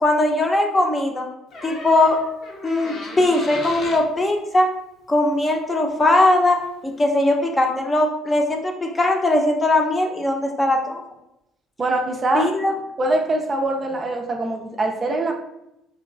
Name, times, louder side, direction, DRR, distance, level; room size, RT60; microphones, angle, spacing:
voice 1, 0.0-1.3 1.6-2.2 2.6-4.7 5.1-6.6 6.8-11.0 12.3-12.7, left 2 dB, 25° left, 2 dB, 0.7 m, -20 dB
Door, 1.5-4.1 5.8-5.9 6.1-6.5, left 2 dB, 55° left, 0.8 m, -36 dB
voice 2, 11.8-12.5 13.0-15.3, right 2 dB, 35° right, 3 dB, 0.4 m, -23 dB
3.9 x 2.9 x 2.5 m, 0.86 s
figure-of-eight pair, 50°, 0 cm